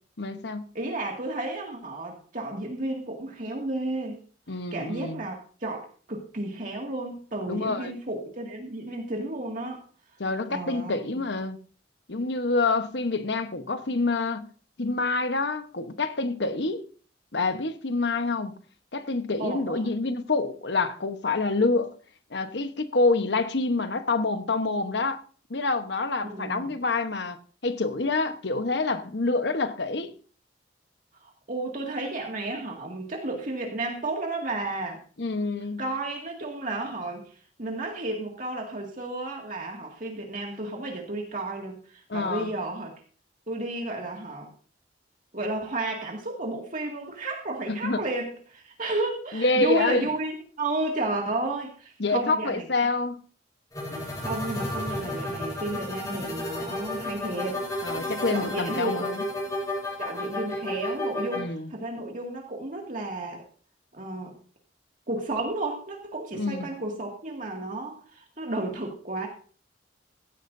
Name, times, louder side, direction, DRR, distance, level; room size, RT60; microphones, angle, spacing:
voice 1, 0.2-0.6 4.5-5.2 7.5-7.9 10.2-11.6 12.1-14.5 14.8-16.9 17.3-18.6 18.9-22.0 22.3-25.2 25.5-27.4 27.6-30.1 35.2-35.8 42.1-42.5 47.7-48.0 49.3-50.1 52.0-53.2 57.8-59.2 61.3-61.7 66.3-66.7, left 3 dB, 65° left, 1.1 m, -27 dB
voice 2, 0.7-4.2 4.7-9.8 10.5-10.9 19.4-19.9 26.2-26.7 31.2-35.0 35.8-37.3 37.6-42.9 43.5-44.5 45.3-52.6 53.9-57.7 58.3-59.1 60.0-63.4 63.9-64.4 65.1-69.3, right 2 dB, 45° right, 2.2 m, -32 dB
sound 1, 53.7-61.4, left 1 dB, 20° left, 7.9 m, -32 dB
16.5 x 13.5 x 2.7 m
head